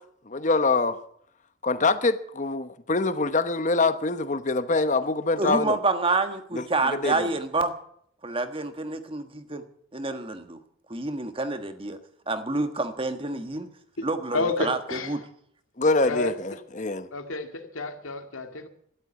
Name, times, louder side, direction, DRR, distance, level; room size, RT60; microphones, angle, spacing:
voice 1, 0.3-1.0 1.6-5.8 6.5-6.6 6.9-7.3 15.8-17.1, left 3 dB, 40° left, 1.0 m, -24 dB
voice 2, 5.4-7.7 8.2-9.6 9.9-10.6 10.9-12.0 12.3-13.7 14.0-15.2, right 3 dB, 25° right, 1.4 m, -28 dB
voice 3, 14.3-15.2 16.1-16.3 17.1-18.7, left 3 dB, 85° left, 2.2 m, -30 dB
13.0 x 12.0 x 9.5 m
head